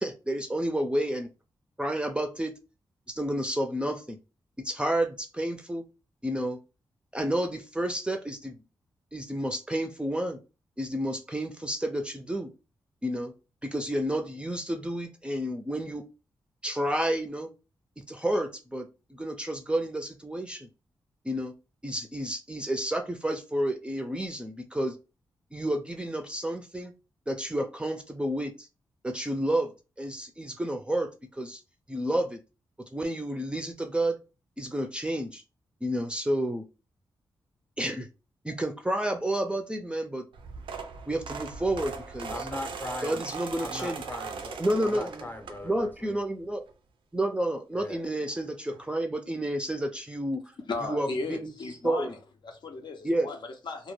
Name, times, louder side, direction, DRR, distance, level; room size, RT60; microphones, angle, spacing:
voice 1, 0.0-1.3 1.8-2.5 3.1-4.2 4.6-5.8 6.2-6.6 7.1-8.6 9.1-10.4 10.8-12.5 13.0-13.3 13.6-16.1 16.6-17.5 18.0-20.7 21.2-21.5 21.8-25.0 25.5-26.9 27.3-28.7 29.0-29.7 30.0-31.6 31.9-32.4 32.9-34.2 34.6-35.4 35.8-36.6 37.8-38.1 38.4-40.2 41.1-42.3 43.0-44.0 44.6-45.3 45.6-46.6 47.1-50.4 50.8-51.5 51.8-52.1 53.0-53.3, right 1 dB, 10° right, 0.4 m, -30 dB
sound 1, 40.3-46.0 46.4-46.7 47.9-48.0 48.2-48.4 48.7-48.8, right 5 dB, 75° right, 0.4 m, -39 dB
voice 2, 42.3-43.3 43.6-46.2 47.7-48.0, left 2 dB, 20° left, 0.7 m, -39 dB
voice 3, 50.7-52.2 52.4-53.9, left 3 dB, 60° left, 0.6 m, -35 dB
2.1 x 2.1 x 3.1 m
cardioid pair, 65°, 9 cm